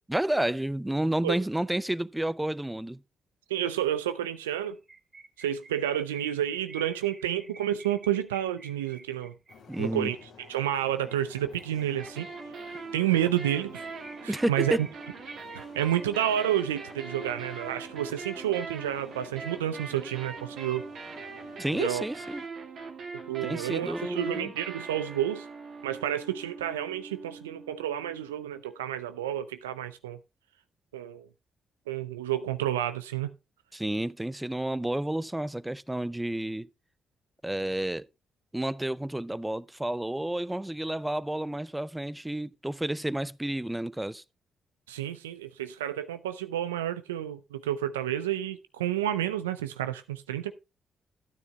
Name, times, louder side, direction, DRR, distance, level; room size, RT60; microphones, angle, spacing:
voice 1, 0.1-3.0 9.7-10.1 14.3-14.8 21.6-22.4 23.4-24.5 33.7-36.7 37.4-38.1 38.5-44.2, right 1 dB, 10° right, 0.5 m, -30 dB
voice 2, 3.5-4.8 5.4-9.3 9.8-12.3 12.9-13.8 14.2-14.9 15.8-20.9 21.7-22.1 23.3-25.5 25.8-30.2 30.9-31.3 31.9-33.3 44.9-50.5, right 11 dB, 90° right, 0.4 m, -30 dB
sound 1, 4.7-12.6 13.0-13.1 13.3-13.4 13.7-16.8, right 3 dB, 35° right, 2.4 m, -50 dB
sound 2, 9.5-22.5, left 5 dB, 70° left, 1.8 m, -53 dB
sound 3, 12.0-28.9, right 4 dB, 65° right, 2.1 m, -42 dB
14.5 x 9.6 x 2.3 m
hypercardioid pair, 40°, 0 cm